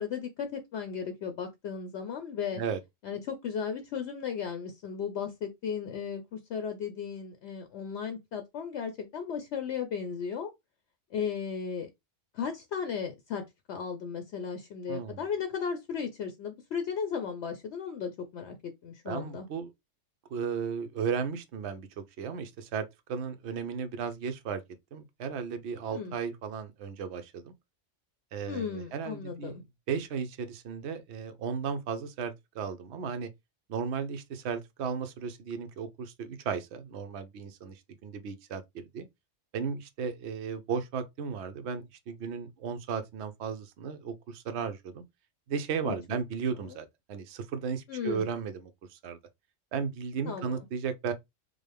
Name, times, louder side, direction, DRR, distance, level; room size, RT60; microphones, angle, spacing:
voice 1, 0.0-2.6 3.0-10.5 11.1-11.9 12.3-19.5 25.9-26.1 28.5-29.6 45.8-46.0 47.9-48.3 50.3-50.6, left 6 dB, 70° left, 0.9 m, -35 dB
voice 2, 14.9-15.2 19.1-19.7 20.3-24.6 24.9-27.5 28.3-29.6 29.9-33.3 33.7-39.1 39.5-45.0 45.5-49.2 49.7-51.1, right 6 dB, 65° right, 0.9 m, -35 dB
5.1 x 2.1 x 3.3 m
omnidirectional pair, 1.3 m